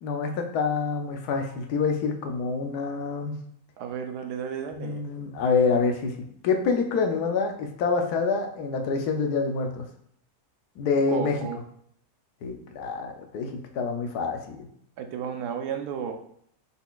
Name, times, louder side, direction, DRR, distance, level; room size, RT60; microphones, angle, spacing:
voice 1, 0.0-3.3 4.7-6.1 6.4-9.9 10.8-11.4 12.4-14.7, left 4 dB, 90° left, 4 dB, 1.2 m, -26 dB
voice 2, 3.8-5.0 11.1-11.6 15.0-16.1, right 7 dB, 90° right, 5 dB, 1.2 m, -33 dB
5.6 x 3.9 x 2.3 m, 0.66 s
omnidirectional pair, 1.6 m